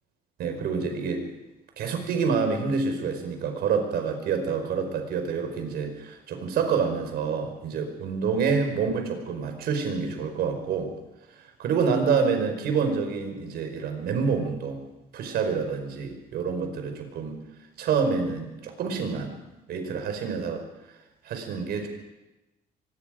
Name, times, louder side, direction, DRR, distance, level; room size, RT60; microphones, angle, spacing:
voice 1, 0.4-1.3 1.8-10.9 11.6-14.8 15.1-17.4 17.8-19.4 19.7-20.6 21.2-21.9, right 5 dB, 70° right, 5 dB, 4.9 m, -27 dB
24.0 x 21.0 x 5.1 m, 1.0 s
cardioid pair, 110°, 17 cm